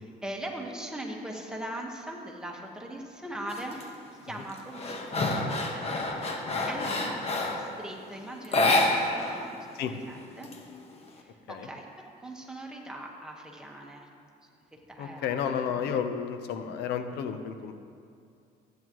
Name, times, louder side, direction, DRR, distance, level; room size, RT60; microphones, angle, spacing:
voice 1, 0.0-5.3 5.7-6.0 6.6-7.1 7.4-9.6 10.1-10.5 11.1-14.1 14.4-15.3 15.7-15.9, right 1 dB, 5° right, -1 dB, 1.4 m, -40 dB
sound 1, 3.5-3.8 4.3-7.7 8.4-9.4 9.7-9.8 10.1-11.1, left 2 dB, 35° left, 1.3 m, -28 dB
voice 2, 6.5-6.9 9.8-9.9 11.5-11.7 15.0-17.8, left 7 dB, 80° left, 8 dB, 0.8 m, -32 dB
14.0 x 9.2 x 3.1 m, 2.4 s
cardioid pair, 110°, 17 cm